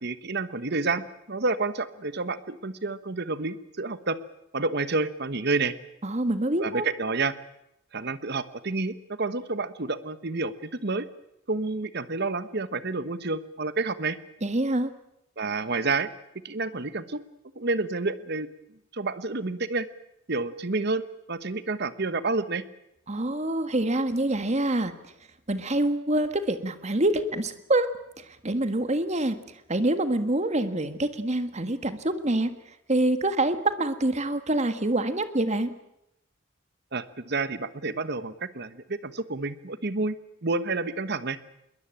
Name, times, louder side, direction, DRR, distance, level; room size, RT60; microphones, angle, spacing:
voice 1, 0.0-4.2 4.5-5.7 6.6-7.3 7.9-11.1 11.5-14.2 15.4-16.1 16.4-17.2 17.6-18.5 18.9-19.9 20.3-22.6 36.9-41.4, right 3 dB, 55° right, 13 dB, 1.3 m, -29 dB
voice 2, 6.0-6.9 14.4-14.9 23.1-24.9 25.5-27.9 28.2-29.4 29.7-32.5 32.9-35.7, right 1 dB, 35° right, 10 dB, 1.7 m, -26 dB
22.0 x 20.5 x 8.9 m, 0.82 s
head